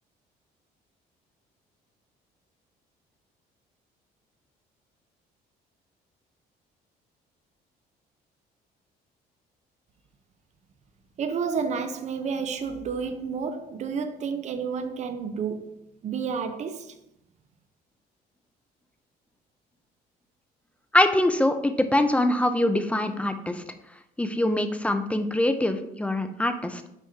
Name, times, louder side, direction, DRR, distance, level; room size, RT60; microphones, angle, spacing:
voice 1, 11.2-16.9, right 6 dB, 45° right, 0.6 m, -30 dB
voice 2, 20.9-23.6 24.2-26.9, left 1 dB, 5° left, 0.5 m, -24 dB
9.6 x 3.5 x 2.8 m
cardioid pair, 110°, 17 cm